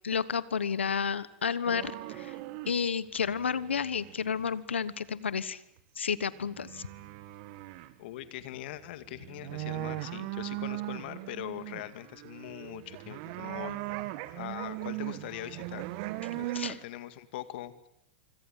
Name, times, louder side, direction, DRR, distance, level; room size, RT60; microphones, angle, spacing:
voice 1, 0.0-2.3 2.7-5.6 6.0-6.8 16.5-16.8, left 6 dB, 90° left, 18 dB, 1.2 m, -31 dB
sound 1, 1.7-2.7 3.0-4.6 5.8-5.9 6.4-7.9 8.3-8.4 8.6-16.8, right 16 dB, 55° right, 2.0 m, -39 dB
voice 2, 8.0-13.8 14.4-15.8 16.4-17.9, left 14 dB, 65° left, 12 dB, 2.1 m, -42 dB
25.5 x 25.0 x 7.4 m, 0.75 s
hypercardioid pair, 100°, 6 cm